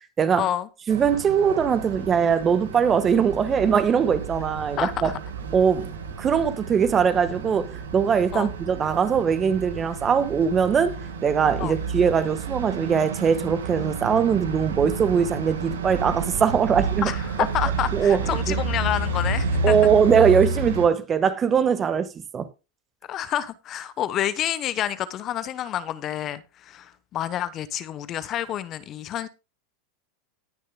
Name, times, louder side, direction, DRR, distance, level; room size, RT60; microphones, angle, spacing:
voice 1, 0.3-0.7 4.8-5.2 8.3-8.5 11.6-11.7 17.0-19.8 23.1-29.3, left 11 dB, 40° left, 0.9 m, -28 dB
voice 2, 0.9-5.1 5.5-5.9 6.2-17.1 17.9-18.6 19.6-22.5, right 7 dB, 30° right, 1.3 m, -21 dB
sound 1, 0.9-20.9, right 4 dB, 90° right, 2.0 m, -31 dB
19.0 x 6.6 x 2.2 m
hypercardioid pair, 110°, 0 cm